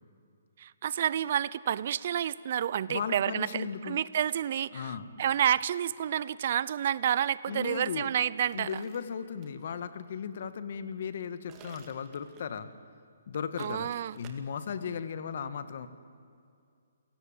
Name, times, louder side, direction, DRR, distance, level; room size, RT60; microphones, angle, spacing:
voice 1, 0.6-8.9 13.6-14.2, right 10 dB, 45° right, 19 dB, 0.6 m, -29 dB
voice 2, 2.9-4.0 4.7-5.1 7.5-8.1 8.5-12.7 13.3-15.9, left 7 dB, 55° left, 12 dB, 1.7 m, -36 dB
sound 1, 8.4-9.6 11.5-12.6 13.6-14.3, right 8 dB, 20° right, 2.2 m, -55 dB
28.5 x 17.5 x 9.0 m, 2.3 s
hypercardioid pair, 160°, 0 cm